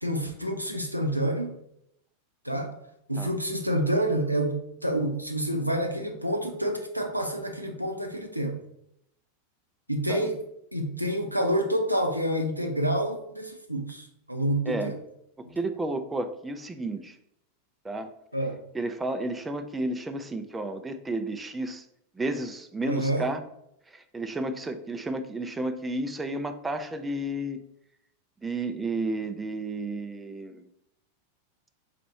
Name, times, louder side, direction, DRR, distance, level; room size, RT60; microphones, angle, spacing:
voice 1, 0.0-1.6 2.4-2.7 3.1-8.6 9.9-10.4 10.7-15.0 18.3-18.6 22.9-23.3, right 1 dB, 90° right, 4 dB, 0.6 m, -28 dB
voice 2, 14.7-15.0 15.4-17.2 17.8-18.1 18.7-21.8 22.2-23.4 23.9-27.6 28.4-30.6, right 2 dB, 10° right, 8 dB, 0.3 m, -32 dB
4.2 x 2.6 x 4.1 m, 0.77 s
figure-of-eight pair, 90°, 0 cm